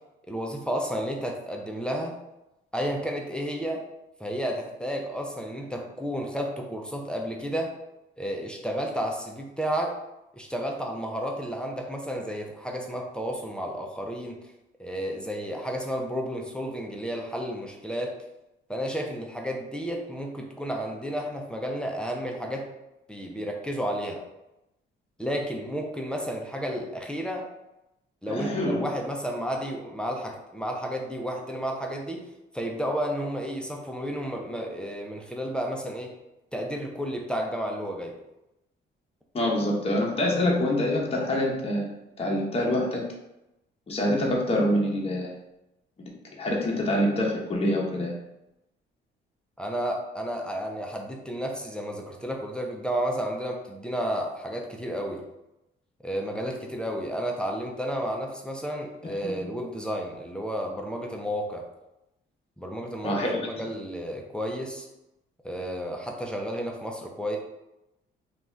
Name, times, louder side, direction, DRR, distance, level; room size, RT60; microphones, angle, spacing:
voice 1, 0.3-2.1 2.7-3.8 4.2-7.7 8.2-9.9 10.3-14.4 14.8-18.1 18.7-22.7 23.1-24.2 25.2-27.5 28.2-32.2 32.5-36.1 36.5-38.2 49.6-55.2 56.0-61.6 62.6-64.9 65.4-67.4, equal, 5° left, 0 dB, 0.5 m, -32 dB
voice 2, 28.3-28.8 39.3-41.9 42.2-43.0 43.9-45.4 46.4-48.1 59.0-59.3 63.0-63.3, left 1 dB, 30° left, -2 dB, 0.8 m, -25 dB
2.6 x 2.3 x 3.2 m, 0.91 s
cardioid pair, 90°, 20 cm